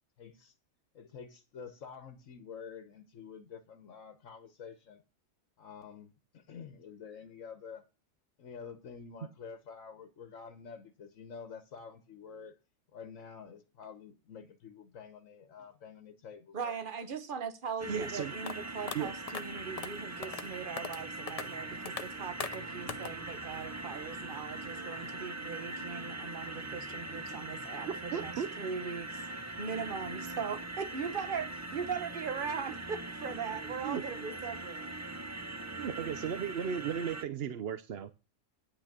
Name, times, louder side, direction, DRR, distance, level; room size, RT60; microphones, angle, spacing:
voice 1, 0.2-0.5 0.9-5.0 5.6-7.9 8.4-12.6 12.9-16.8, left 6 dB, 70° left, 1.4 m, -48 dB
voice 2, 16.5-29.2 29.6-34.9, right 6 dB, 40° right, 1.3 m, -39 dB
sound 1, 17.8-37.2, right 2 dB, 20° right, 0.4 m, -41 dB
voice 3, 17.9-18.3 18.9-19.1 27.9-28.6 33.8-34.0 35.8-38.1, right 8 dB, 55° right, 0.8 m, -36 dB
sound 2, 18.5-18.6 18.9-19.0 19.3-19.4 19.8-19.9 20.2-20.5 20.8-21.0 21.3-21.5 21.9-22.0 22.4-22.6 22.9-23.1, left 6 dB, 40° left, 0.6 m, -38 dB
9.9 x 6.1 x 6.7 m
omnidirectional pair, 1.4 m